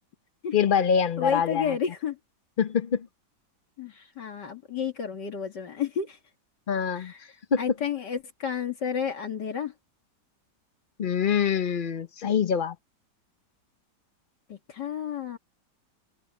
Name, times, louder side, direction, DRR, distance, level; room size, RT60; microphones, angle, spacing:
voice 1, 0.5-1.8 2.6-3.1 6.7-7.1 7.5-7.6 11.0-12.7, left 7 dB, 35° left, 0.9 m, -25 dB
voice 2, 1.2-2.2 3.8-6.2 7.0-7.3 7.6-9.7 14.5-15.4, left 7 dB, 70° left, 2.6 m, -31 dB
open air
omnidirectional pair, 1.9 m